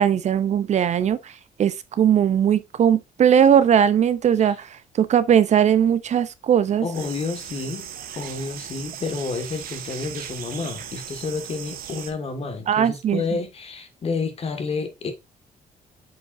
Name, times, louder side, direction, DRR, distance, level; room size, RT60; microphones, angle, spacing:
voice 1, 0.0-1.3 1.6-6.9 12.7-13.2, right 9 dB, 50° right, 0.6 m, -19 dB
voice 2, 6.8-7.9 8.1-15.1, left 4 dB, 40° left, 1.7 m, -30 dB
sound 1, 6.9-12.1, right 9 dB, 75° right, 1.2 m, -37 dB
8.0 x 5.2 x 2.5 m
cardioid pair, 120°, 15 cm